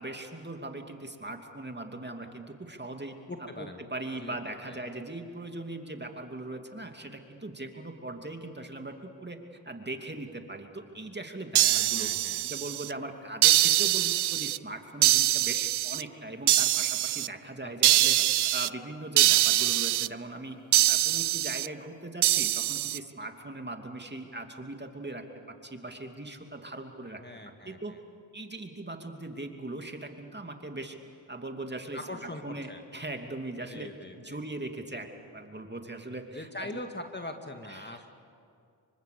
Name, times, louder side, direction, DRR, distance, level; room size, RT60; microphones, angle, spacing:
voice 1, 0.0-3.2 3.6-9.4 9.6-12.1 12.4-20.6 20.9-28.0 28.3-31.0 31.3-33.9 34.2-36.8 37.6-38.1, right 2 dB, 20° right, 4 dB, 2.8 m, -40 dB
voice 2, 3.3-3.8 4.2-4.4 4.7-4.8 11.5-12.5 17.6-18.3 27.2-28.0 31.9-32.8 33.7-34.4 36.3-38.1, left 1 dB, 20° left, 5 dB, 2.3 m, -42 dB
sound 1, 11.5-12.9 13.4-14.6 15.0-16.0 16.5-17.3 17.8-18.7 19.2-20.1 20.7-21.7 22.2-23.0, right 13 dB, 55° right, 0.6 m, -24 dB
26.5 x 24.5 x 6.9 m, 2.4 s
supercardioid pair, 40°, 47 cm